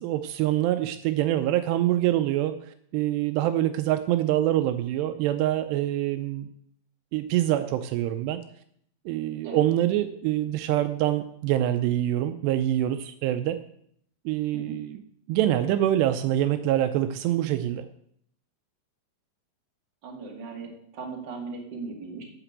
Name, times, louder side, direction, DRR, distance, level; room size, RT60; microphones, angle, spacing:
voice 1, 0.0-2.6 2.9-6.5 7.1-8.4 9.1-13.6 14.3-17.9, right 13 dB, 80° right, 9 dB, 2.7 m, -25 dB
voice 2, 20.0-22.2, right 4 dB, 30° right, -1 dB, 2.3 m, -38 dB
12.0 x 5.8 x 8.1 m, 0.68 s
omnidirectional pair, 4.9 m